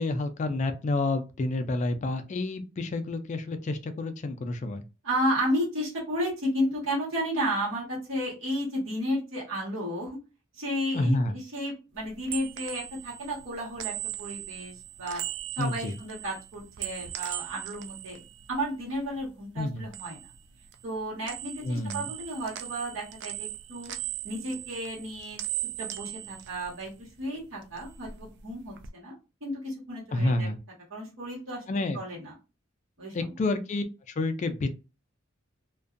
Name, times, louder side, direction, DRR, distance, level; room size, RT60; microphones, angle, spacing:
voice 1, 0.0-4.8 10.9-11.3 15.6-15.9 19.6-19.9 21.6-22.1 30.1-30.6 31.7-32.0 33.1-34.7, left 2 dB, 35° left, 9 dB, 0.3 m, -29 dB
voice 2, 5.0-10.2 10.5-15.2 15.6-18.2 18.5-20.2 20.8-23.9 24.2-25.4 25.8-29.1 29.4-30.5 30.9-32.3 33.0-33.3, equal, 85° right, -4 dB, 1.3 m, -33 dB
sound 1, 12.0-19.3 19.6-21.0 21.3-27.3 27.6-28.9, right 13 dB, 60° right, 0.3 m, -39 dB
2.5 x 2.2 x 2.4 m, 0.29 s
head